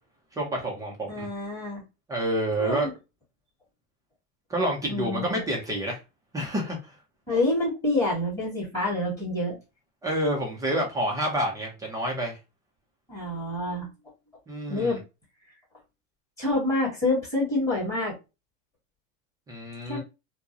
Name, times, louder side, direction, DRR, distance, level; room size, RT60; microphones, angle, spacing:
voice 1, 0.3-1.3 2.1-2.9 4.5-6.0 6.3-7.0 10.0-12.4 14.5-15.0 19.5-20.0, right 1 dB, 10° right, -1 dB, 0.4 m, -28 dB
voice 2, 1.1-1.8 2.6-2.9 4.9-5.4 7.3-9.6 13.1-13.9 14.7-15.0 16.4-18.1 19.9-20.0, left 2 dB, 10° left, -8 dB, 2.0 m, -27 dB
4.4 x 2.0 x 2.6 m, 0.28 s
supercardioid pair, 140°, 39 cm